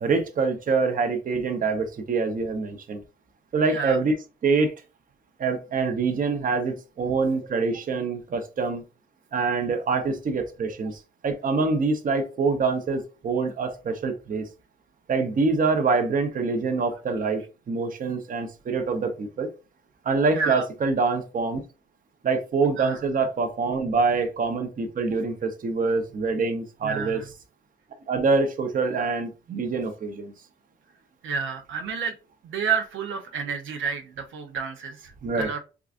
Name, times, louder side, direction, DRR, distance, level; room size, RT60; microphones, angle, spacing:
voice 1, 0.0-3.0 3.5-4.1 4.4-4.7 5.4-8.8 9.3-14.5 15.1-19.5 20.0-21.6 22.2-27.2 28.1-30.3 35.2-35.5, right 4 dB, 45° right, 0.8 m, -25 dB
voice 2, 3.7-4.0 20.3-20.6 22.8-23.0 26.8-27.2 31.2-32.2 32.4-35.6, right 6 dB, 75° right, 0.7 m, -30 dB
4.6 x 2.4 x 2.5 m
cardioid pair, 90°, 20 cm